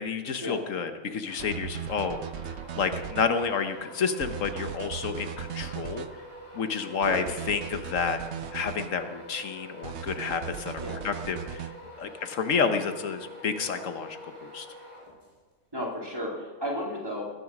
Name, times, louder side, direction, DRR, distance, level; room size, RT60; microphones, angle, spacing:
voice 1, 0.0-2.2 2.8-6.0 6.5-8.2 8.5-11.7 12.0-14.7, left 5 dB, 75° left, 8 dB, 1.3 m, -30 dB
sound 1, 1.2-15.5, equal, 25° left, 5.3 m, -46 dB
sound 2, 1.4-3.3 4.2-6.1 7.0-8.9 9.8-11.7, right 8 dB, 60° right, 0.9 m, -38 dB
voice 2, 15.7-17.3, equal, 20° right, -2 dB, 3.3 m, -33 dB
20.0 x 10.5 x 6.0 m, 1.3 s
omnidirectional pair, 1.4 m